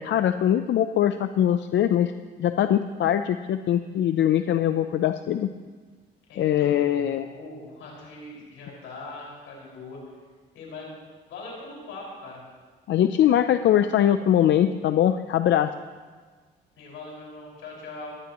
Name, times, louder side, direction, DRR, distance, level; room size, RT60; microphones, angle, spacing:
voice 1, 0.0-2.1 2.4-5.5 6.4-7.3 12.9-15.7, left 10 dB, 65° left, 10 dB, 0.6 m, -22 dB
voice 2, 6.3-10.0 10.5-12.4 16.8-18.2, left 2 dB, 90° left, -3 dB, 5.4 m, -41 dB
19.5 x 15.5 x 3.0 m, 1.5 s
cardioid pair, 90°, 20 cm